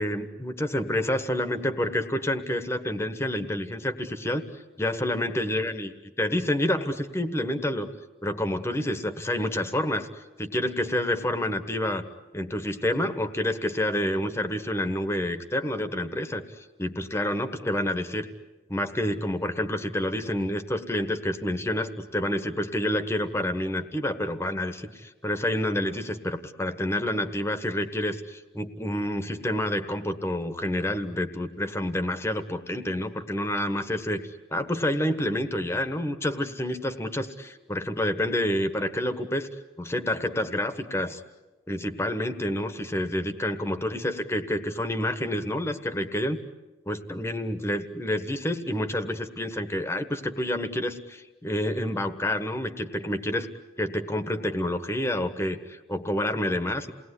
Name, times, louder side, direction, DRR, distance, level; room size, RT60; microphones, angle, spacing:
voice 1, 0.0-4.4 4.8-5.9 6.2-7.9 8.2-10.1 10.4-12.0 12.3-16.4 16.8-18.3 18.7-34.2 34.5-39.5 39.8-41.2 41.7-46.4 46.9-53.5 53.8-56.9, left 1 dB, 15° left, 10 dB, 1.3 m, -28 dB
29.0 x 20.0 x 9.8 m, 1.2 s
head